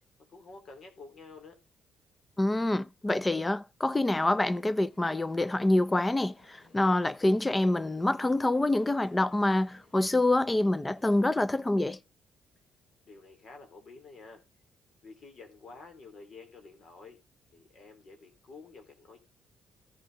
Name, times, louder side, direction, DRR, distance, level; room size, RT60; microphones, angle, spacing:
voice 1, 0.3-1.6 13.0-14.4 15.0-17.2 17.5-19.2, left 4 dB, 55° left, 3.3 m, -50 dB
voice 2, 2.4-12.0, left 2 dB, 15° left, 0.6 m, -26 dB
sound 1, 4.1-11.5, left 2 dB, 40° left, 5.0 m, -61 dB
14.5 x 5.8 x 4.0 m
cardioid pair, 90°, 0 cm